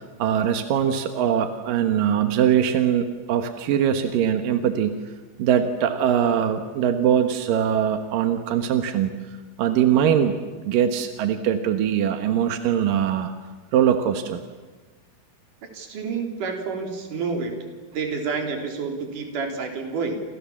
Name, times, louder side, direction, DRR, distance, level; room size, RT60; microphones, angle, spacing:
voice 1, 0.0-5.0 5.4-9.1 9.6-10.3 10.7-13.3 13.7-14.4, right 9 dB, 70° right, 7 dB, 2.2 m, -22 dB
voice 2, 15.7-17.5 17.9-20.2, right 5 dB, 45° right, 3 dB, 4.5 m, -29 dB
28.5 x 28.0 x 7.3 m, 1.3 s
omnidirectional pair, 5.8 m